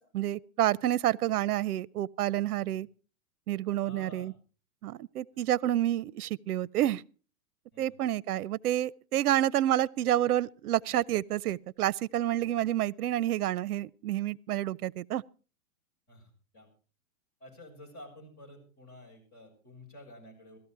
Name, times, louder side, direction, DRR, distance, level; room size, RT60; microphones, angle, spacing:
voice 1, 0.1-2.9 3.5-4.3 4.8-7.0 7.8-15.2, right 13 dB, 85° right, 0.6 m, -29 dB
voice 2, 3.8-4.3 5.4-5.5 7.7-8.0 16.1-16.7 17.4-20.6, left 1 dB, 20° left, 6.4 m, -51 dB
16.5 x 13.5 x 4.6 m
hypercardioid pair, 170°, 44 cm